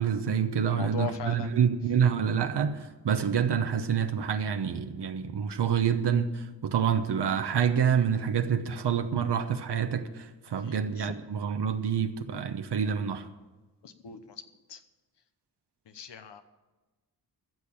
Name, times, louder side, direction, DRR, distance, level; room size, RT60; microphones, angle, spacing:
voice 1, 0.0-13.2, right 7 dB, 75° right, 1.0 m, -27 dB
voice 2, 0.7-1.6 10.6-11.2 13.8-14.4 14.7-14.8 15.9-16.4, left 7 dB, 85° left, 1.1 m, -39 dB
15.0 x 6.6 x 8.7 m
cardioid pair, 75°, 41 cm